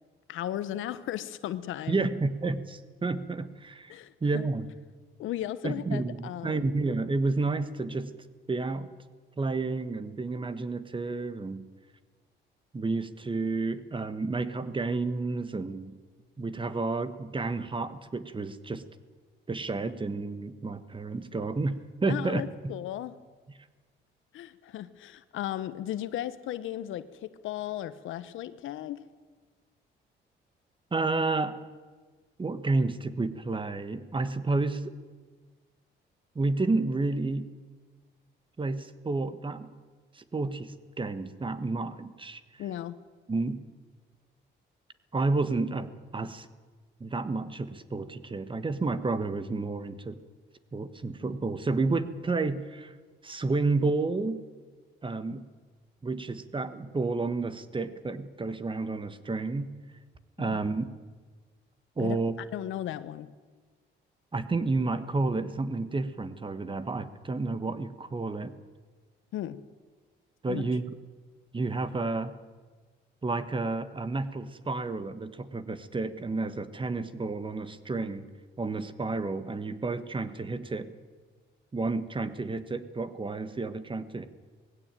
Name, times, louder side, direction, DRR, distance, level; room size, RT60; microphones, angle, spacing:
voice 1, 0.3-2.1 3.9-4.5 5.2-6.6 22.1-23.1 24.3-29.1 42.6-43.0 60.4-60.6 62.0-62.2 62.5-63.3 69.3-69.7 70.4-70.6, left 12 dB, 80° left, 14 dB, 1.0 m, -36 dB
voice 2, 1.9-4.7 5.6-8.1 8.5-8.9 9.4-11.6 12.7-15.9 16.4-18.8 19.5-22.4 30.9-31.6 32.4-34.9 36.3-37.5 38.6-39.7 40.1-42.6 43.3-43.6 45.1-46.5 47.0-50.2 50.7-52.9 53.2-54.4 55.0-55.5 56.0-59.7 60.4-60.9 62.0-62.4 64.3-68.6 70.4-70.9 71.5-72.3 73.2-78.3 78.6-80.9 81.7-84.3, right 3 dB, 25° right, 12 dB, 1.4 m, -30 dB
19.0 x 16.0 x 9.1 m, 1.4 s
cardioid pair, 90°, 20 cm